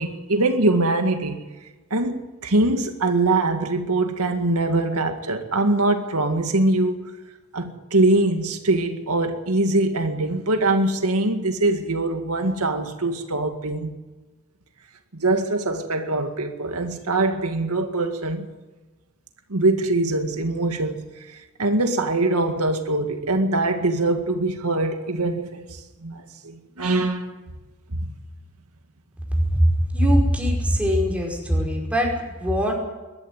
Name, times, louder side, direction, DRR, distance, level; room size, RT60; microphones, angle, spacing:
voice 1, 0.0-1.4 1.9-7.1 7.5-13.9 15.1-18.5 19.5-27.3 27.9-28.0, right 2 dB, 90° right, 6 dB, 2.0 m, -23 dB
voice 2, 29.9-32.8, equal, 5° right, -1 dB, 5.3 m, -21 dB
22.0 x 13.0 x 9.5 m, 1.2 s
head